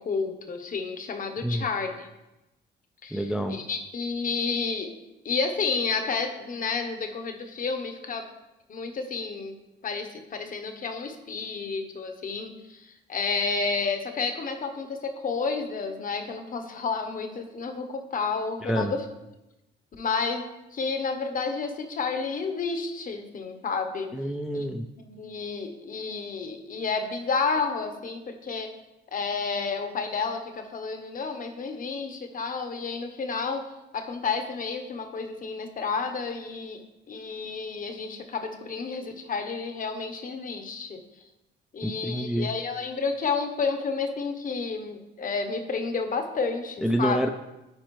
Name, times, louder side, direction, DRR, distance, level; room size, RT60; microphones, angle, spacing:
voice 1, 0.0-2.1 3.0-4.9 5.2-8.3 8.7-9.5 9.8-19.0 20.0-20.4 20.7-24.1 24.5-24.6 25.0-28.7 29.1-33.6 33.9-36.8 37.1-41.0 41.7-47.2, left 4 dB, 45° left, 6 dB, 0.8 m, -30 dB
voice 2, 3.1-3.6 18.6-18.9 24.1-24.9 41.8-42.5 46.8-47.3, equal, 5° right, 5 dB, 0.3 m, -27 dB
8.8 x 4.4 x 3.0 m, 0.98 s
cardioid pair, 90°, 20 cm